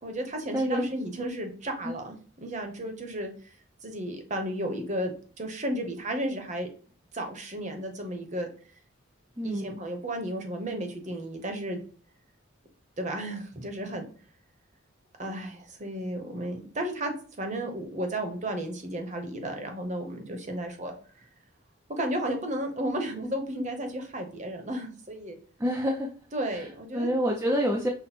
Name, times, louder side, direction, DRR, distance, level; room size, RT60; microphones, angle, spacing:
voice 1, 0.0-3.5 3.8-6.7 7.1-8.5 9.4-11.8 13.0-14.1 15.2-20.9 21.9-25.4 26.3-27.1 27.7-27.9, right 1 dB, 35° right, 4 dB, 0.8 m, -33 dB
voice 2, 0.5-0.8 1.8-1.9 9.4-9.8 25.6-26.1 26.5-27.9, equal, 10° right, -1 dB, 0.4 m, -28 dB
5.9 x 2.1 x 4.2 m, 0.42 s
head